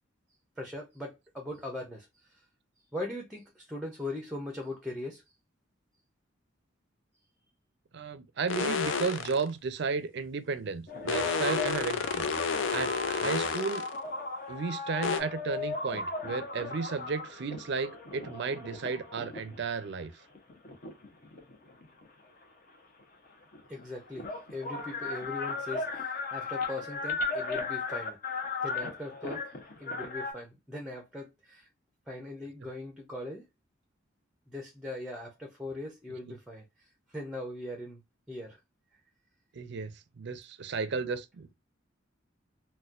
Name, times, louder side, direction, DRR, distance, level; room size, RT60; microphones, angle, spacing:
voice 1, 0.6-2.4 2.9-5.2 23.7-28.2 28.6-29.5 29.8-31.7 32.1-33.5 34.5-38.0 38.3-38.6, left 2 dB, 5° right, 0.6 m, -40 dB
voice 2, 7.9-13.8 14.5-20.1 39.6-41.5, right 5 dB, 60° right, 0.5 m, -34 dB
sound 1, 8.5-9.5 11.1-13.9 15.0-15.2, left 5 dB, 70° left, 0.5 m, -30 dB
sound 2, 10.9-19.7 20.3-22.1 23.3-23.4 23.5-30.3, left 3 dB, 45° left, 0.8 m, -36 dB
4.1 x 2.2 x 2.4 m
head